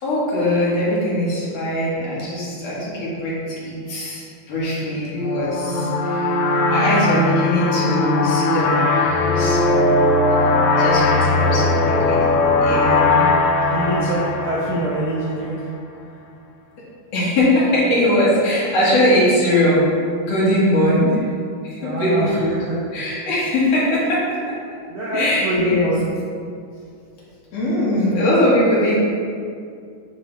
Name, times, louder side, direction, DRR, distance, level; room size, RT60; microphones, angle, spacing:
voice 1, 0.0-9.8 10.8-12.3 12.6-13.3 13.6-14.2 17.1-19.9 20.2-21.2 21.6-22.5 22.9-24.2 25.1-25.9 27.5-29.0, left 1 dB, 60° left, -7 dB, 2.5 m, -21 dB
sound 1, 5.1-15.5, left 2 dB, 80° left, 1.8 m, -19 dB
voice 2, 10.9-11.3 13.7-15.7 21.8-22.8 24.9-26.0, right 1 dB, 80° right, -7 dB, 1.2 m, -24 dB
9.0 x 3.3 x 3.3 m, 2.3 s
omnidirectional pair, 3.5 m